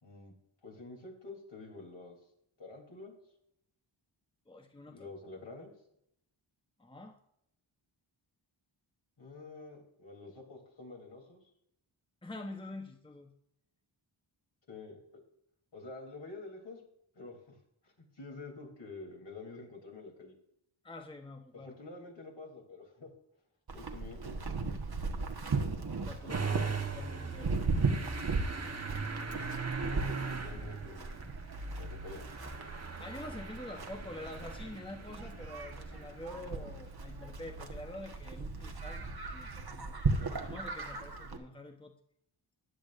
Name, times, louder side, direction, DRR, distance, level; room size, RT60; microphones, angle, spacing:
voice 1, 0.0-0.3 0.6-2.2 2.6-3.1 4.9-5.7 9.2-11.4 14.7-15.2 15.7-16.8 17.1-17.6 17.8-20.3 21.5-23.1 23.7-24.6 26.2-26.8 29.9-31.1 31.8-32.3, left 3 dB, 60° left, 0 dB, 3.6 m, -48 dB
voice 2, 4.5-5.1 6.8-7.2 12.2-13.3 20.8-21.8 25.7-27.6 33.0-40.0 40.4-42.0, left 1 dB, 10° left, 4 dB, 1.0 m, -46 dB
Livestock farm animals working animals, 23.7-41.4, right 4 dB, 50° right, 1.5 m, -37 dB
Motor vehicle (road) / Engine starting, 26.3-37.9, right 4 dB, 30° right, 1.3 m, -40 dB
15.0 x 9.7 x 2.6 m, 0.76 s
cardioid pair, 55°, 49 cm